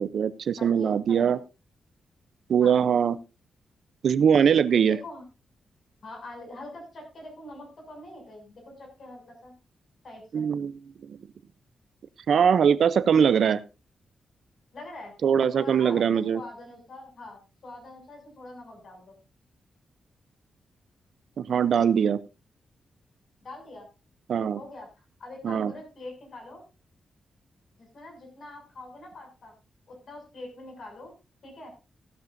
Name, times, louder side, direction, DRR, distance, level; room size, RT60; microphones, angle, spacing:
voice 1, 0.0-1.4 2.5-3.2 4.0-5.0 10.3-10.8 11.1-11.2 12.3-13.6 15.2-16.4 21.4-22.2 24.3-24.6 25.4-25.7, right 7 dB, 60° right, 16 dB, 0.6 m, -22 dB
voice 2, 0.6-1.3 2.6-2.8 4.8-5.2 6.0-9.5 10.0-10.5 14.7-15.1 15.5-19.1 23.4-23.9 24.6-26.6 27.8-29.5 29.9-31.1 31.4-31.7, left 2 dB, 50° left, 2 dB, 6.6 m, -44 dB
16.0 x 12.0 x 2.6 m, 0.29 s
wide cardioid pair, 170°, 0 cm